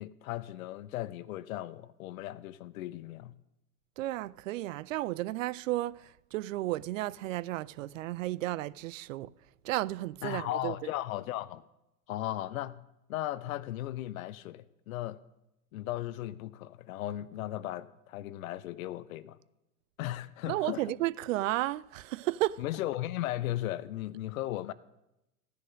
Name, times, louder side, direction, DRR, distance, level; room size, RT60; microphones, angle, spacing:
voice 1, 0.0-3.3 10.2-11.6 12.1-12.8 13.1-15.2 15.7-19.4 20.0-20.8 22.6-24.7, left 14 dB, 60° left, 0.8 m, -36 dB
voice 2, 4.0-9.3 9.6-10.7 20.5-22.6, right 16 dB, 60° right, 0.5 m, -33 dB
15.5 x 10.0 x 6.3 m
figure-of-eight pair, 85°, 46 cm